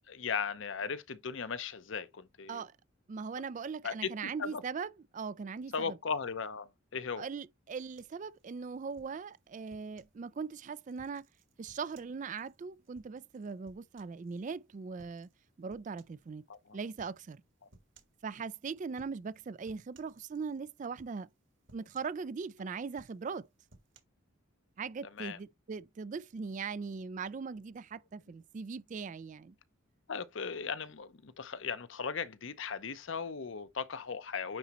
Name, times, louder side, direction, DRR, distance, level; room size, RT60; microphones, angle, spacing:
voice 1, 0.0-2.6 3.8-4.1 4.4-4.6 5.7-7.3 16.5-16.8 25.2-25.4 30.1-34.6, left 6 dB, 65° left, 0.7 m, -37 dB
voice 2, 3.1-6.0 7.2-11.3 11.6-15.3 15.6-16.4 16.7-17.4 18.2-21.3 21.7-23.5 24.8-29.5, right 5 dB, 35° right, 0.3 m, -40 dB
sound 1, 8.0-10.2 10.7-14.5 15.0-15.4 15.7-16.3 17.0-17.2 17.7-18.2 18.9-19.4 19.6-20.6 21.0-21.4 21.7-22.5 22.9-24.0, right 2 dB, 60° right, 1.7 m, -63 dB
9.4 x 4.2 x 2.9 m
head